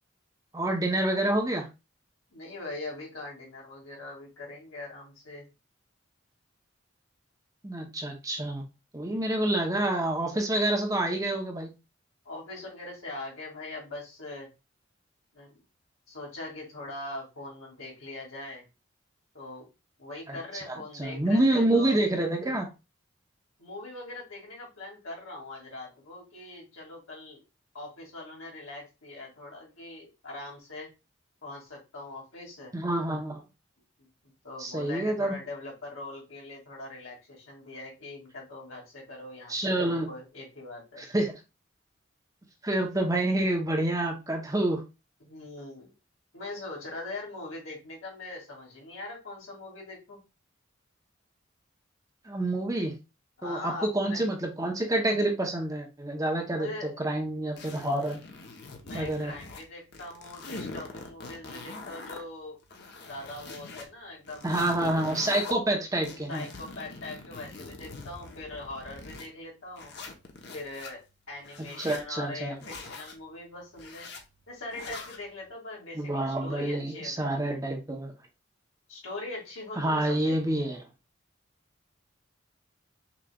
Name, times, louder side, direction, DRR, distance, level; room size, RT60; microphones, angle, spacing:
voice 1, 0.5-1.7 7.6-8.6 8.9-11.7 20.3-20.4 20.7-22.7 32.7-33.4 34.6-35.3 39.5-40.1 41.0-41.3 42.6-44.8 52.3-53.0 53.4-58.2 58.9-59.3 64.4-66.4 71.8-72.6 75.9-78.1 79.8-80.8, right 1 dB, 15° right, 2 dB, 0.7 m, -28 dB
voice 2, 2.3-5.5 12.2-14.5 15.3-15.6 16.1-18.6 19.3-19.7 20.0-22.0 23.6-27.4 27.7-30.9 31.4-32.7 34.0-41.1 45.2-45.9 46.3-50.2 53.4-54.2 56.5-57.0 58.8-62.6 63.0-64.6 66.3-69.9 70.5-74.1 74.5-77.6 78.9-80.6, left 2 dB, 80° left, -2 dB, 2.2 m, -42 dB
sound 1, 57.6-59.7 59.9-62.2 62.6-63.8 64.2-65.5 66.0-69.3 69.8-70.9 71.4-72.0 72.6-73.2 73.7-74.2 74.7-75.2, left 3 dB, 50° left, 0.8 m, -43 dB
5.9 x 3.1 x 2.3 m, 0.26 s
head